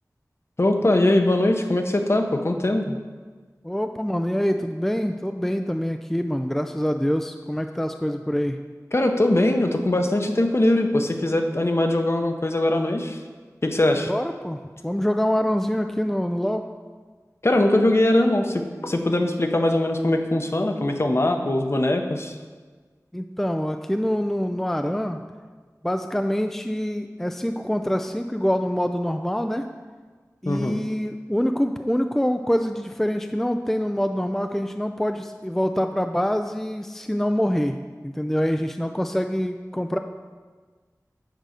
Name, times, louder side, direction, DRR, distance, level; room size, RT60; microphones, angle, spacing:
voice 1, 0.6-3.0 8.9-13.2 13.6-14.1 17.4-22.4 30.4-30.8, left 1 dB, 45° left, 4 dB, 0.8 m, -21 dB
voice 2, 3.6-8.6 14.1-16.6 23.1-25.2 25.8-29.6 30.4-37.8 38.0-40.0, equal, 5° left, 6 dB, 0.3 m, -25 dB
6.6 x 4.7 x 6.3 m, 1.4 s
wide cardioid pair, 45°, 6 cm